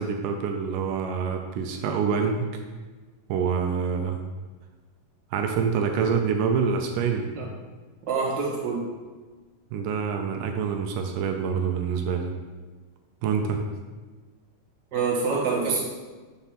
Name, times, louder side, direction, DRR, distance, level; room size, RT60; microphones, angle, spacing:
voice 1, 0.0-2.6 3.3-4.2 5.3-7.3 9.7-12.3 13.2-13.6, right 6 dB, 85° right, 4 dB, 2.2 m, -26 dB
voice 2, 8.1-8.8 14.9-15.8, right 4 dB, 40° right, -6 dB, 1.9 m, -26 dB
7.2 x 3.5 x 5.7 m, 1.3 s
omnidirectional pair, 3.7 m